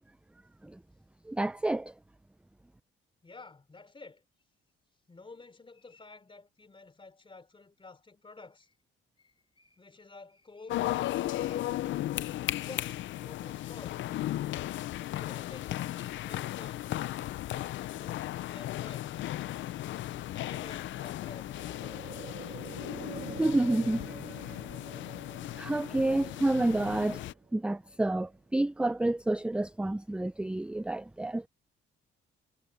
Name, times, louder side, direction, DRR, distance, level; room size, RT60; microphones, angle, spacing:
voice 1, 1.3-1.9 23.4-24.0 25.6-27.2 27.5-31.4, right 1 dB, 5° right, 0.5 m, -29 dB
voice 2, 3.2-4.2 5.1-8.7 9.2-11.7 12.6-14.0 15.2-17.2 17.9-19.3 20.3-21.9, left 3 dB, 25° left, 4.4 m, -51 dB
sound 1, 10.7-27.3, left 14 dB, 75° left, 0.5 m, -36 dB
sound 2, 18.9-28.4 28.7-28.8, right 6 dB, 45° right, 2.8 m, -48 dB
cardioid pair, 90°, 20 cm